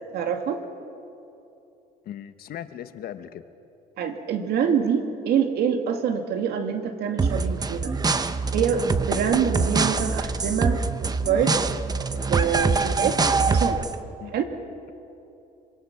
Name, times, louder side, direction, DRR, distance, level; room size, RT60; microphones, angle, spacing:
voice 1, 0.1-0.6 4.0-7.9 8.5-11.6 12.3-13.2 13.5-13.8 14.3-14.4, right 7 dB, 70° right, 5 dB, 2.3 m, -25 dB
voice 2, 2.0-3.4 12.7-12.9 14.2-14.3, left 10 dB, 65° left, 10 dB, 1.3 m, -38 dB
sound 1, 7.2-14.0, right 4 dB, 25° right, 0.9 m, -24 dB
26.0 x 25.5 x 6.0 m, 2.8 s
cardioid pair, 110°, 17 cm